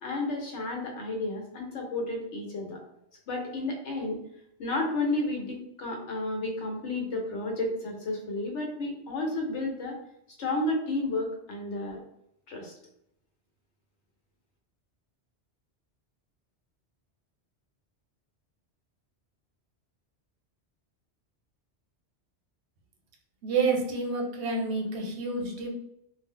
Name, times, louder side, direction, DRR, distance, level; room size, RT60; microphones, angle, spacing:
voice 1, 0.0-2.8 3.3-4.2 4.6-10.0 10.4-12.0 12.5-12.7, left 2 dB, 85° left, 1 dB, 1.1 m, -32 dB
voice 2, 23.4-25.7, right 4 dB, 75° right, 1 dB, 1.0 m, -29 dB
2.4 x 2.0 x 3.6 m, 0.75 s
omnidirectional pair, 1.1 m